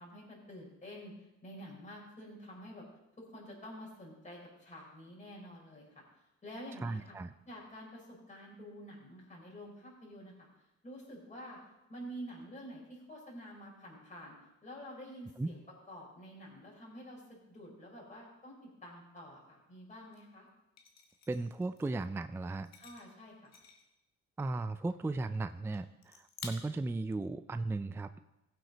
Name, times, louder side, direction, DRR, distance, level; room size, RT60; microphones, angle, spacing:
voice 1, 0.0-2.8 3.2-6.0 6.4-7.1 7.4-10.5 10.8-11.6 11.9-14.4 14.6-15.6 15.9-20.5 22.8-23.5, equal, 25° left, -4 dB, 4.6 m, -49 dB
voice 2, 6.8-7.3 15.4-15.5 21.3-22.7 24.4-28.1, right 2 dB, 10° right, 11 dB, 0.4 m, -36 dB
sound 1, 20.1-20.2 20.8-22.0 22.5-24.0 24.4-24.6 24.9-25.4 25.7-25.8 26.0-26.5, left 7 dB, 60° left, 1.8 m, -52 dB
15.5 x 8.0 x 4.0 m, 0.94 s
cardioid pair, 90°, 30 cm